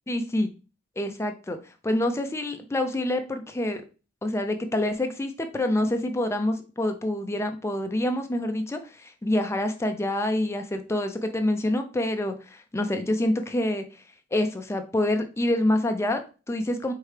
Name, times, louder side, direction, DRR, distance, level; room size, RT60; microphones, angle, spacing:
voice 1, 0.1-0.5 1.0-1.6 1.8-3.8 4.2-13.8 14.3-16.9, left 1 dB, 15° left, 6 dB, 0.4 m, -27 dB
4.5 x 2.8 x 3.2 m, 0.33 s
head